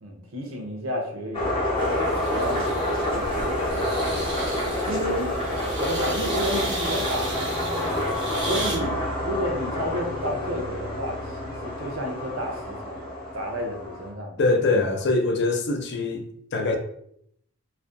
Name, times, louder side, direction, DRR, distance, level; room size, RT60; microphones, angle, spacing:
voice 1, 0.0-4.3 4.8-5.3 5.8-7.8 8.5-13.1 13.3-14.5, equal, 70° right, 0.6 m, -32 dB
sound 1, 1.3-14.1, left 1 dB, 25° left, 0.7 m, -28 dB
sound 2, 1.8-8.8, right 1 dB, 20° right, 0.5 m, -34 dB
voice 2, 14.4-16.2 16.5-16.7, left 3 dB, 55° left, 0.3 m, -23 dB
2.4 x 2.2 x 2.4 m
head